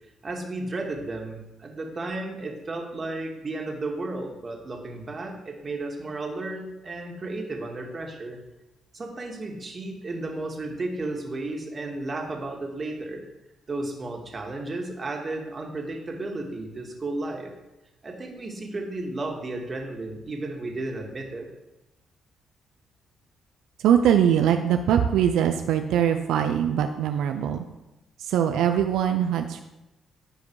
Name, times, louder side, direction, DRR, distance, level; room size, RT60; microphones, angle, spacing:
voice 1, 0.2-8.4 8.9-13.2 13.7-17.5 18.0-21.5, right 2 dB, 35° right, 1 dB, 2.0 m, -33 dB
voice 2, 23.8-27.6 28.2-29.6, right 9 dB, 85° right, 6 dB, 0.5 m, -22 dB
14.5 x 5.1 x 4.7 m, 0.98 s
cardioid pair, 90°, 0 cm